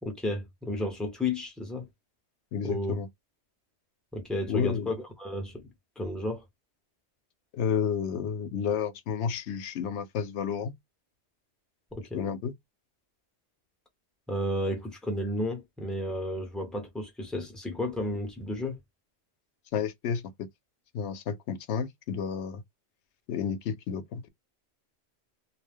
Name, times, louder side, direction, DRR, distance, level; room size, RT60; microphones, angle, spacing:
voice 1, 0.0-1.9 2.6-3.0 4.1-5.6 6.0-6.4 11.9-12.2 14.3-18.8, left 1 dB, ahead, 0.8 m, -32 dB
voice 2, 2.5-3.1 4.5-4.9 7.5-10.7 12.1-12.5 19.7-20.2 20.9-22.6 23.3-24.3, left 7 dB, 85° left, 0.9 m, -31 dB
2.4 x 2.1 x 3.3 m
omnidirectional pair, 1.1 m